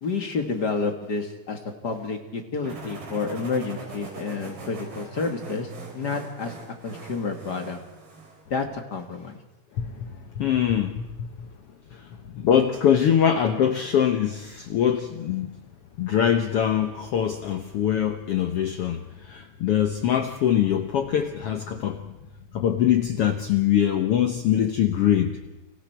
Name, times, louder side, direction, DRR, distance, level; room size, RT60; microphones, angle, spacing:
voice 1, 0.0-7.8 8.5-9.4, left 4 dB, 40° left, 5 dB, 1.6 m, -30 dB
sound 1, 2.6-8.4, right 3 dB, 90° right, 6.1 m, -41 dB
voice 2, 9.8-11.3 11.9-12.1 12.3-15.6 16.0-22.1 22.5-25.4, left 9 dB, 75° left, 7 dB, 1.3 m, -23 dB
29.5 x 25.0 x 4.6 m, 1.0 s
omnidirectional pair, 3.9 m